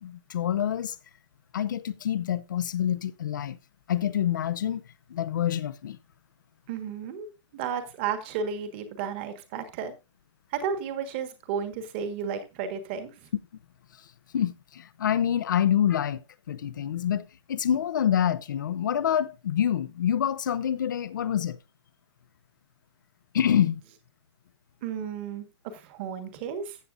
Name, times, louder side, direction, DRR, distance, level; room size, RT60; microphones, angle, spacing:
voice 1, 0.0-1.0 1.5-3.6 3.9-4.8 5.1-6.0 14.3-16.2 16.5-21.6 23.3-23.8, left 9 dB, 40° left, 0.7 m, -26 dB
voice 2, 6.7-7.3 7.5-9.9 10.5-13.3 24.8-26.8, right 7 dB, 25° right, 1.5 m, -33 dB
15.0 x 7.6 x 2.6 m
hypercardioid pair, 170°, 15 cm